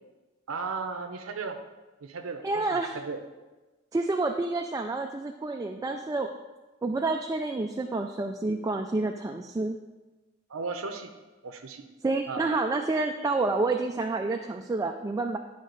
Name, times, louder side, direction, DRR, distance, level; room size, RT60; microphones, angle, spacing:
voice 1, 0.5-1.6 2.0-3.2 10.5-11.1 11.4-11.8 12.3-12.4, right 4 dB, 75° right, 5 dB, 0.7 m, -35 dB
voice 2, 2.4-2.9 3.9-6.3 6.8-9.8 12.0-15.4, right 3 dB, 15° right, 4 dB, 0.3 m, -29 dB
11.0 x 5.1 x 3.9 m, 1.2 s
head